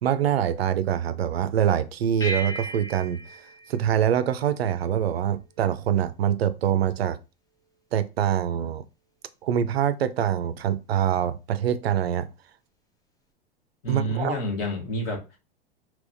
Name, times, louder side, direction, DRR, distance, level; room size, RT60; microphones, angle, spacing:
voice 1, 0.0-3.2 3.7-7.2 7.9-8.8 9.4-12.3 13.9-14.4, right 9 dB, 75° right, 0.5 m, -24 dB
sound 1, 2.2-5.0, right 1 dB, 10° left, 0.6 m, -36 dB
voice 2, 13.8-15.4, equal, 65° left, 1.5 m, -29 dB
3.4 x 3.0 x 2.6 m
figure-of-eight pair, 90°, 31 cm